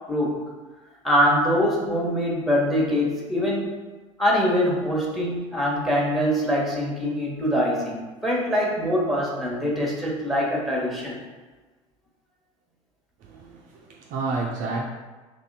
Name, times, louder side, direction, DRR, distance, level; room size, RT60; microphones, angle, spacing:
voice 1, 1.0-3.7 4.2-11.2, equal, ahead, -3 dB, 1.2 m, -23 dB
voice 2, 13.2-14.8, right 3 dB, 50° right, 0 dB, 0.5 m, -30 dB
3.0 x 2.7 x 4.0 m, 1.3 s
hypercardioid pair, 80°, 17 cm